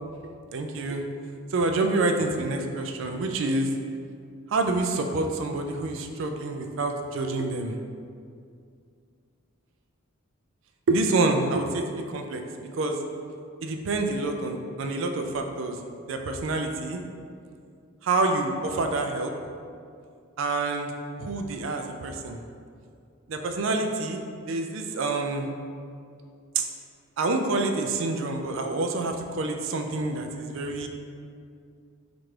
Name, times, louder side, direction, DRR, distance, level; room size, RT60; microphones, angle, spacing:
voice 1, 0.5-1.0 1.5-3.7 4.5-7.8 10.9-12.4 12.8-13.0 13.6-15.8 16.0-17.0 18.0-19.3 20.4-20.9 21.2-22.4 23.3-24.2 24.5-25.5 26.6-26.7 27.2-30.9, right 2 dB, 65° right, 4 dB, 0.3 m, -27 dB
4.4 x 2.5 x 3.2 m, 2.3 s
head